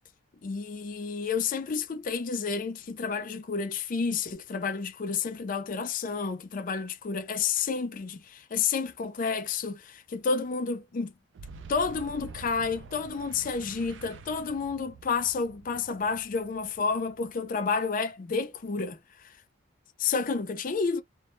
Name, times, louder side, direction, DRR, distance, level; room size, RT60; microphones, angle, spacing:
voice 1, 0.4-11.1 11.7-19.0 20.0-21.0, left 5 dB, 45° left, 0.4 m, -30 dB
Boom, 11.3-17.9, right 4 dB, 65° right, 0.4 m, -48 dB
2.0 x 2.0 x 3.0 m
head